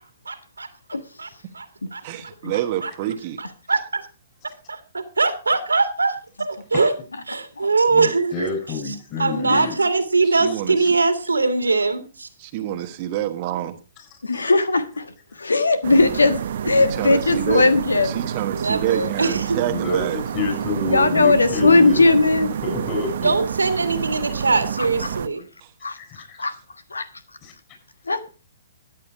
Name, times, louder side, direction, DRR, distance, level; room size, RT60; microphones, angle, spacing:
voice 1, 0.3-0.7 1.2-1.7 1.9-2.0 2.8-2.9 3.4-4.1 4.7-6.9 7.3-8.5 8.9-12.3 18.5-19.6 23.2-25.4, right 3 dB, 80° right, 2.2 m, -22 dB
voice 2, 2.0-3.4 10.2-10.8 12.4-13.8 16.8-17.7 18.0-20.2 25.6-25.7, right 12 dB, 40° right, 1.2 m, -27 dB
voice 3, 7.9-9.8 14.3-14.5 18.0-18.1 19.7-22.1 22.6-23.4 24.4-24.5 25.8-26.5 27.4-27.5, left 2 dB, 30° left, 8.0 m, -28 dB
voice 4, 14.2-18.1 20.8-22.5 24.8-24.9 25.8-26.0 26.4-26.5 26.9-27.1 28.1-28.2, left 3 dB, 80° left, 1.3 m, -18 dB
sound 1, 15.8-25.3, right 8 dB, 55° right, 1.0 m, -29 dB
14.0 x 9.5 x 4.8 m
figure-of-eight pair, 120°, 0 cm